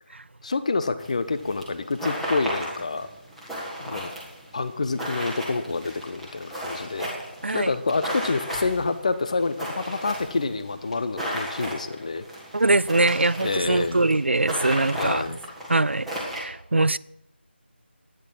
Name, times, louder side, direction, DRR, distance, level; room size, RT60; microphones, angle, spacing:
voice 1, 0.4-3.1 3.8-4.1 4.5-7.1 7.5-12.2 13.4-14.0 14.9-15.4, left 3 dB, 35° left, 0.8 m, -27 dB
sound 1, 1.0-16.4, equal, ahead, 1.7 m, -35 dB
voice 2, 12.5-15.2 15.7-17.0, right 2 dB, 75° right, 0.4 m, -22 dB
12.0 x 10.0 x 6.0 m
figure-of-eight pair, 165°, 6 cm